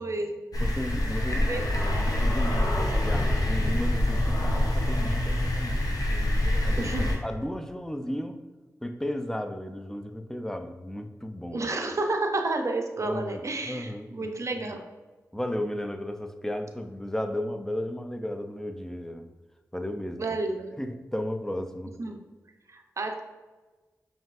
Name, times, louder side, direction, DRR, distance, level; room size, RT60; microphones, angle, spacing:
voice 1, 0.0-0.4 1.3-2.1 2.5-3.1 6.8-7.1 11.5-14.8 20.2-20.8 22.0-22.2 22.7-23.2, right 2 dB, 50° right, 4 dB, 0.5 m, -31 dB
sound 1, 0.5-7.2, left 1 dB, 70° left, 0.7 m, -25 dB
voice 2, 0.6-1.7 2.0-8.4 8.8-11.7 13.0-14.3 15.3-19.3 19.7-20.2 20.8-22.0, left 1 dB, 5° left, 7 dB, 0.4 m, -34 dB
5.5 x 2.7 x 2.4 m, 1.3 s
cardioid pair, 45°, 7 cm